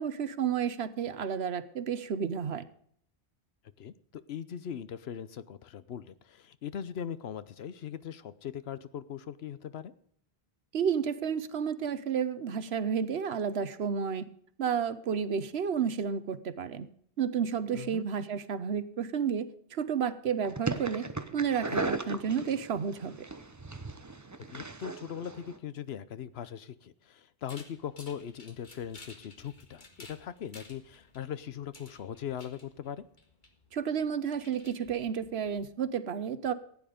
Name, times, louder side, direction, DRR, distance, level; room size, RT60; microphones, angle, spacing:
voice 1, 0.0-2.6 10.7-14.3 14.6-16.9 17.2-21.1 21.3-23.1 33.7-36.5, right 7 dB, 85° right, 14 dB, 1.1 m, -31 dB
voice 2, 3.8-9.9 17.7-18.1 24.5-33.0, left 8 dB, 80° left, 15 dB, 1.0 m, -40 dB
sound 1, 20.4-25.6, right 3 dB, 20° right, 0.7 m, -37 dB
sound 2, 27.5-35.7, left 2 dB, 50° left, 1.9 m, -55 dB
15.0 x 9.7 x 5.1 m, 0.63 s
omnidirectional pair, 1.0 m